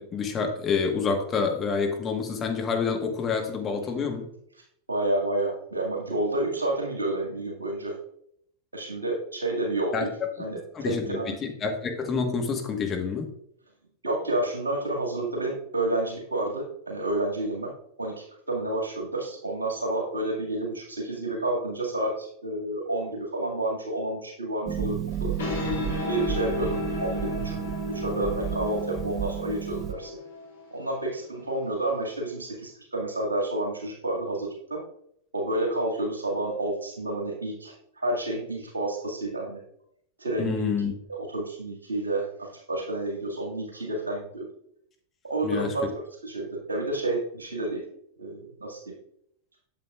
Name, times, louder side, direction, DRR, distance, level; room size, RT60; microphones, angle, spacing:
voice 1, 0.0-4.2 9.9-10.1 10.7-13.3 40.4-40.9 45.4-45.7, left 5 dB, 25° left, 3 dB, 1.3 m, -28 dB
voice 2, 4.9-7.9 8.7-10.1 10.4-11.3 14.0-17.7 18.0-25.3 26.1-27.6 27.8-30.2 30.7-34.8 35.3-39.6 40.2-40.7 41.1-44.5 45.2-47.8 48.2-48.9, right 2 dB, 75° right, -1 dB, 2.0 m, -30 dB
Harp, 24.7-29.9, right 10 dB, 25° right, 0.7 m, -32 dB
sound 1, 25.1-32.3, left 5 dB, 65° left, 2.4 m, -35 dB
8.3 x 7.5 x 2.4 m, 0.70 s
figure-of-eight pair, 90°, 0 cm